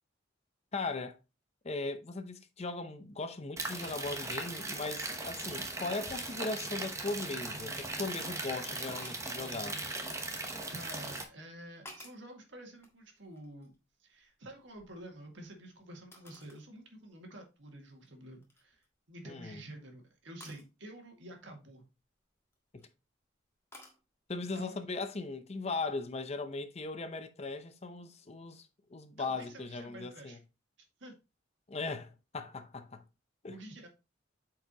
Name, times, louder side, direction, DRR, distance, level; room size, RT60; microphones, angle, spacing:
voice 1, 0.7-1.2 1.6-9.8 19.2-19.6 22.7-22.9 24.3-30.4 31.7-33.0 33.4-33.6, left 3 dB, 35° left, 0.6 m, -38 dB
sound 1, 3.6-11.2, right 2 dB, 15° right, 0.9 m, -39 dB
sound 2, 9.0-9.3 10.1-10.9 11.5-12.3 12.8-13.9 14.2-15.5 16.1-16.7 17.1-17.2 17.9-18.1 18.4-18.9 20.4-20.7 22.4-22.9 23.7-24.0, left 1 dB, 15° left, 1.5 m, -54 dB
voice 2, 10.7-13.7 14.0-18.8 19.1-21.8 24.6-24.8 29.2-30.4 31.0-31.1 33.5-33.9, right 1 dB, 65° right, 2.0 m, -49 dB
8.0 x 4.8 x 2.9 m
head